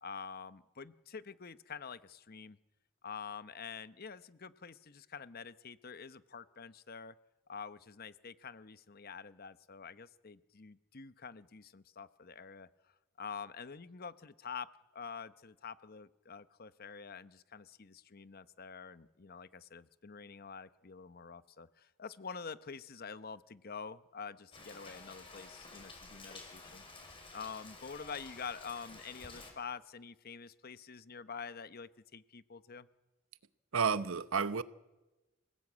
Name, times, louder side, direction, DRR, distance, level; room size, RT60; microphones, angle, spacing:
voice 1, 0.0-2.6 3.0-7.1 7.5-12.7 13.2-14.7 14.9-26.8 27.3-32.9, left 5 dB, 45° left, 0.9 m, -47 dB
Rain, 24.5-29.5, left 3 dB, 25° left, 5.4 m, -52 dB
voice 2, 33.7-34.6, right 6 dB, 80° right, 0.9 m, -31 dB
27.5 x 18.0 x 8.6 m
head